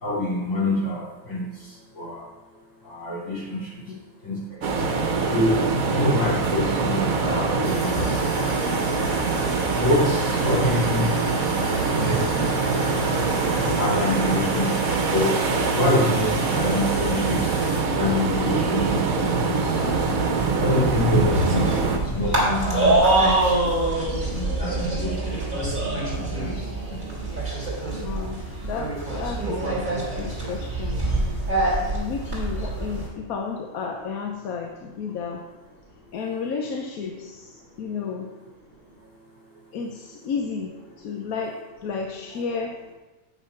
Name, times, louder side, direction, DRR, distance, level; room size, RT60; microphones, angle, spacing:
voice 1, 0.0-2.3 2.8-3.9 4.2-4.9 5.2-8.3 9.7-11.2 12.0-12.5 13.5-15.5 15.7-17.6 17.9-19.9 20.6-23.7 24.3-25.7 26.0-27.0 36.1-36.3, left 1 dB, 60° left, -7 dB, 3.6 m, -26 dB
sound 1, 4.6-22.0, right 4 dB, 75° right, 1.4 m, -24 dB
sound 2, 7.6-17.8, right 1 dB, 45° left, 1.3 m, -35 dB
sound 3, 19.8-33.1, right 2 dB, 35° right, 3.6 m, -25 dB
voice 2, 28.0-31.0 31.9-35.4 36.1-38.3 39.7-40.7 41.0-41.5 41.8-42.8, left 5 dB, 85° left, 2 dB, 1.3 m, -32 dB
8.4 x 7.1 x 5.8 m, 1.2 s
omnidirectional pair, 1.5 m